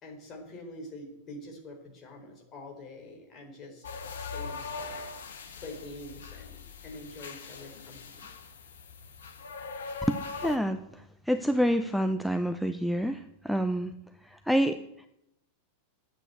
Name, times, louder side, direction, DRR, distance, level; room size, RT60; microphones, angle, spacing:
voice 1, 0.0-3.8 4.2-5.1 5.6-8.3, left 2 dB, 30° left, 2 dB, 4.2 m, -45 dB
sound 1, 3.8-10.6, left 4 dB, 65° left, 1.6 m, -41 dB
voice 2, 10.1-13.9 14.2-14.8, equal, ahead, 7 dB, 0.6 m, -28 dB
10.0 x 8.6 x 8.0 m, 0.81 s
figure-of-eight pair, 90°, 0 cm